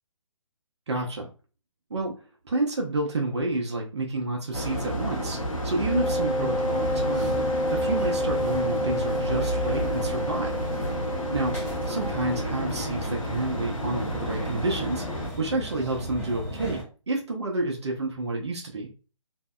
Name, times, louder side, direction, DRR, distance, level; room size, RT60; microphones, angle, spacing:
voice 1, 0.9-1.3 1.9-2.1 2.4-7.4 7.7-10.6 11.3-11.6 11.9-18.9, right 2 dB, 55° right, 1 dB, 0.6 m, -29 dB
sound 1, 4.5-15.3, equal, 90° left, 0.7 m, -31 dB
Wind instrument woodwind instrument, 5.9-12.5, equal, 40° left, 0.5 m, -29 dB
sound 2, 6.6-16.8, equal, 5° left, 1.0 m, -38 dB
2.6 x 2.1 x 2.2 m, 0.35 s
figure-of-eight pair, 140°, 17 cm